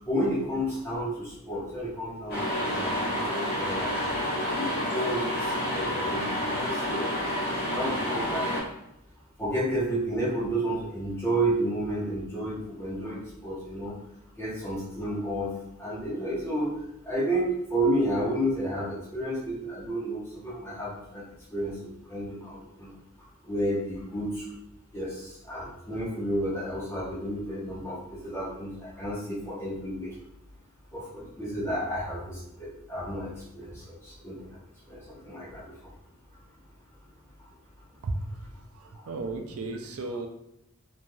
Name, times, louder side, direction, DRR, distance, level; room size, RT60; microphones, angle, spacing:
voice 1, 0.0-4.1 4.6-8.5 9.4-13.9 14.4-15.5 15.8-16.7 17.0-21.2 21.5-21.7 22.1-22.9 23.5-24.4 24.9-30.1 30.9-34.5 34.9-35.7, right 1 dB, 10° left, -8 dB, 0.9 m, -31 dB
sound 1, 2.3-8.6, equal, 45° left, 1.0 m, -29 dB
voice 2, 38.0-38.4 38.7-40.3, right 2 dB, 75° right, 4 dB, 0.4 m, -34 dB
3.1 x 2.6 x 2.2 m, 0.83 s
head